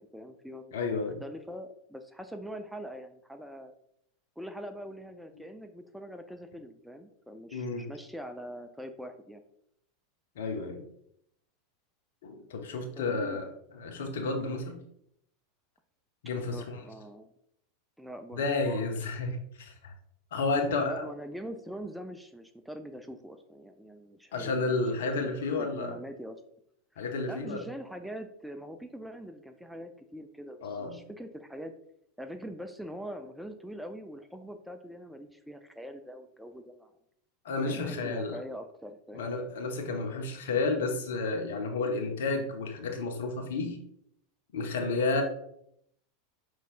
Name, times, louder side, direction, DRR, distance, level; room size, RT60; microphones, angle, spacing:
voice 1, 0.0-3.7 4.4-9.4 13.0-13.4 16.5-17.3 18.0-18.5 20.8-24.8 25.2-26.4 26.9-31.7 32.2-36.9 37.6-39.3, equal, ahead, 7 dB, 0.4 m, -43 dB
voice 2, 0.7-1.2 7.5-7.9 10.4-10.8 12.2-13.5 13.8-14.8 16.2-16.8 18.3-19.9 20.3-21.1 24.3-25.9 27.0-27.6 30.6-31.0 37.4-38.4 39.1-43.8 44.5-45.2, left 3 dB, 65° left, 4 dB, 0.7 m, -31 dB
5.4 x 3.1 x 2.5 m, 0.72 s
figure-of-eight pair, 90°, 0 cm